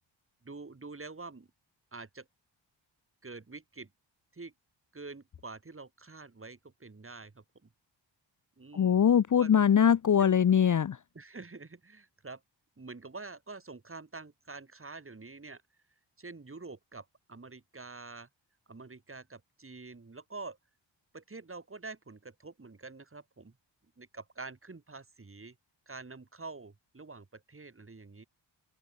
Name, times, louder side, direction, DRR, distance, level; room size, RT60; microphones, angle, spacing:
voice 1, 0.4-1.5 1.9-2.3 3.2-3.9 4.3-4.5 4.9-7.4 8.6-9.0 9.3-9.5 10.2-10.4 11.1-12.4 12.8-15.6 16.2-18.3 18.7-20.6 21.1-23.5 24.0-25.6 25.9-28.3, right 3 dB, 25° right, 4.0 m, -46 dB
voice 2, 8.7-11.0, left 8 dB, 40° left, 0.7 m, -22 dB
open air
wide cardioid pair, 110°, 46 cm